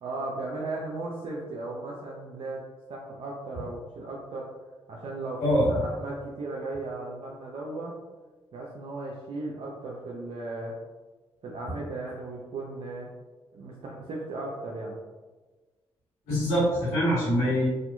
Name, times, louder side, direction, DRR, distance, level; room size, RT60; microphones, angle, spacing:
voice 1, 0.0-4.5 4.9-7.9 8.5-10.8 11.4-13.1 13.5-15.0, right 2 dB, 60° right, -4 dB, 0.5 m, -36 dB
voice 2, 16.3-17.7, equal, 80° left, -9 dB, 1.4 m, -24 dB
2.8 x 2.4 x 2.2 m, 1.3 s
hypercardioid pair, 45°, 12 cm